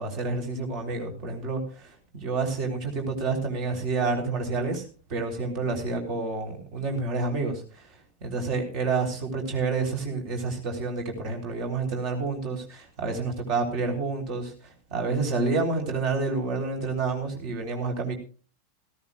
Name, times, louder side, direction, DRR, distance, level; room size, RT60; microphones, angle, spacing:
voice 1, 0.0-4.8 5.1-7.8 8.2-14.5 14.9-18.1, right 3 dB, 45° right, 4 dB, 3.7 m, -29 dB
17.5 x 16.0 x 2.4 m, 0.38 s
figure-of-eight pair, 90°, 0 cm